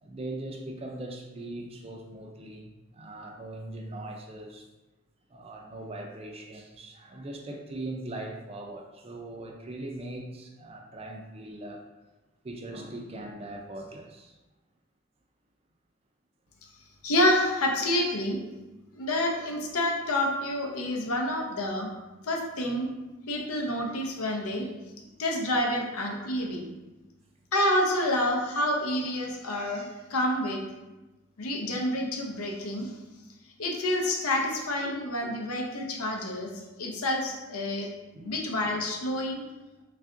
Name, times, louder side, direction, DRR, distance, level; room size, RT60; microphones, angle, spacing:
voice 1, 0.0-4.6 5.3-11.8 12.4-14.3 25.1-25.2 34.8-34.9 38.1-38.3, right 1 dB, 25° right, 1 dB, 0.3 m, -40 dB
voice 2, 17.0-18.4 18.9-21.9 22.2-22.9 23.3-24.7 25.2-26.7 27.5-30.6 31.4-32.9 33.6-36.5 36.8-37.9 38.2-39.4, left 1 dB, 85° left, 1 dB, 0.7 m, -28 dB
3.3 x 2.4 x 3.6 m, 1.1 s
head